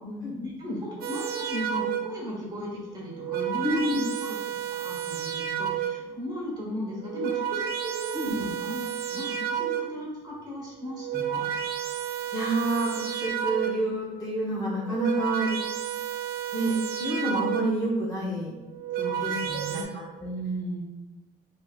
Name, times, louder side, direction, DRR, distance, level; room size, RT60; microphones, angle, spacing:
voice 1, 0.0-3.8 4.2-11.5 18.9-19.9 20.2-20.8, equal, 25° right, -5 dB, 1.5 m, -36 dB
sound 1, 1.0-2.3 3.0-6.2 6.9-10.1 10.8-14.0 14.7-17.9 18.6-19.8, right 10 dB, 65° right, 0.5 m, -31 dB
voice 2, 3.6-4.0 8.1-8.3 12.3-15.5 16.5-18.5 19.2-20.1, right 1 dB, 20° left, -6 dB, 0.8 m, -28 dB
3.3 x 3.1 x 2.3 m, 1.1 s
cardioid pair, 110°, 17 cm